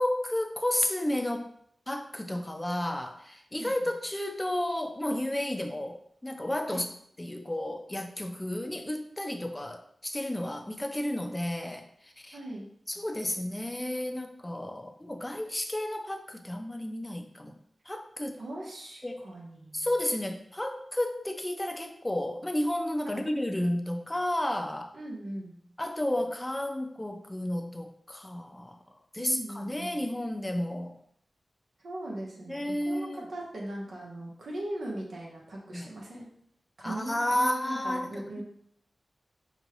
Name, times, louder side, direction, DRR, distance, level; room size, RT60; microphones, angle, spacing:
voice 1, 0.0-1.5 1.9-6.9 7.2-12.4 12.9-17.6 17.9-18.4 19.0-19.3 19.7-25.0 25.8-28.8 29.1-31.0 32.5-33.3 35.7-35.9 36.8-38.4, left 1 dB, 20° left, 4 dB, 0.6 m, -32 dB
voice 2, 12.3-12.6 18.4-19.9 23.0-23.2 24.9-25.5 29.2-30.0 31.8-36.3 36.8-38.4, right 1 dB, 80° right, -3 dB, 1.2 m, -39 dB
5.3 x 2.4 x 3.0 m, 0.68 s
cardioid pair, 50°, 0 cm